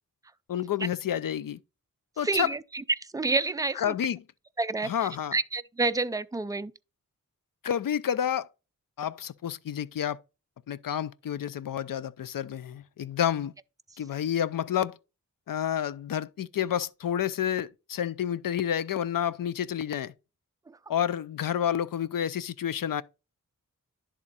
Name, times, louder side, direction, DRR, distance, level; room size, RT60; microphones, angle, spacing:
voice 1, 0.5-1.6 2.2-2.5 3.7-4.2 4.8-5.4 7.6-8.5 9.0-10.2 10.7-13.5 14.0-15.0 15.5-20.1 20.9-23.0, left 9 dB, 75° left, 0.5 m, -29 dB
voice 2, 2.2-2.6 3.1-3.9 4.6-4.9 5.3-6.7, right 3 dB, 10° right, 0.4 m, -28 dB
11.0 x 3.7 x 4.1 m
wide cardioid pair, 100°, 33 cm